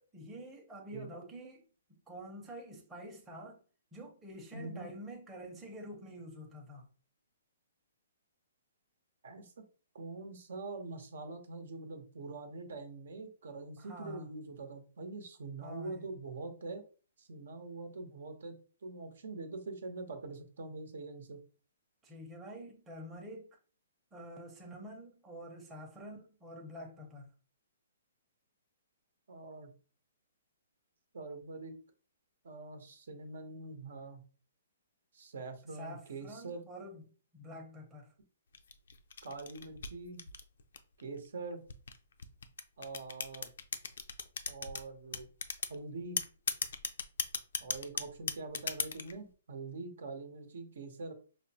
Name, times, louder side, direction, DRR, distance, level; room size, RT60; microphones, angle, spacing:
voice 1, 0.1-1.6 1.9-3.6 3.9-6.9 13.8-14.3 15.6-16.1 22.0-23.6 24.1-27.3 35.7-37.0 37.3-38.1, equal, 10° right, 0.7 m, -47 dB
voice 2, 4.5-4.9 9.2-9.5 9.9-16.8 17.2-18.6 18.8-21.4 29.3-29.7 31.1-31.7 32.4-34.2 35.1-36.6 39.2-40.2 41.0-41.6 42.8-43.5 44.5-45.3 45.7-46.2 47.6-51.1, right 3 dB, 75° right, 0.8 m, -44 dB
sound 1, 38.5-41.0 41.7-44.8 45.1-45.8 46.2-49.1, left 6 dB, 70° left, 0.4 m, -36 dB
4.9 x 2.1 x 2.7 m
hypercardioid pair, 160°, 0 cm